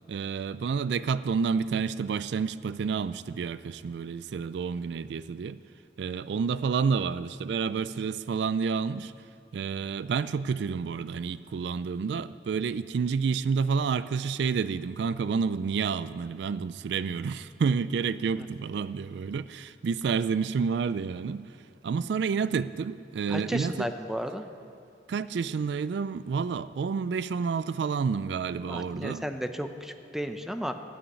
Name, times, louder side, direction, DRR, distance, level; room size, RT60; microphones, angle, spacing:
voice 1, 0.1-5.6 6.0-9.1 9.5-21.6 21.8-23.9 25.1-29.3, right 5 dB, 65° right, 16 dB, 0.3 m, -29 dB
voice 2, 23.3-24.4 28.7-30.7, equal, ahead, 7 dB, 0.5 m, -33 dB
12.5 x 8.8 x 9.7 m, 2.4 s
head